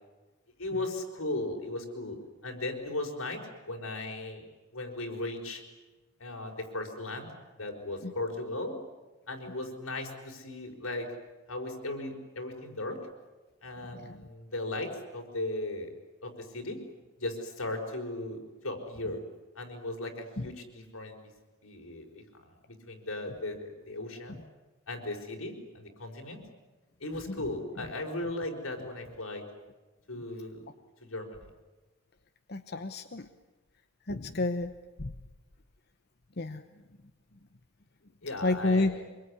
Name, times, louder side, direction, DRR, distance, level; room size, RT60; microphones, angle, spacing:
voice 1, 0.6-2.2 2.4-3.4 3.7-4.4 4.7-5.6 6.2-7.3 7.6-8.8 9.3-11.1 11.5-13.0 13.6-16.8 17.2-19.2 19.5-21.2 21.6-24.4 24.9-26.4 27.0-29.4 30.1-30.7 31.0-31.5 38.2-39.1, left 2 dB, 90° left, 3 dB, 5.0 m, -37 dB
voice 2, 32.5-33.2 34.1-34.7 35.0-35.1 36.4-36.6 38.4-38.9, left 2 dB, 50° left, 8 dB, 1.0 m, -29 dB
25.5 x 23.0 x 9.8 m, 1.2 s
head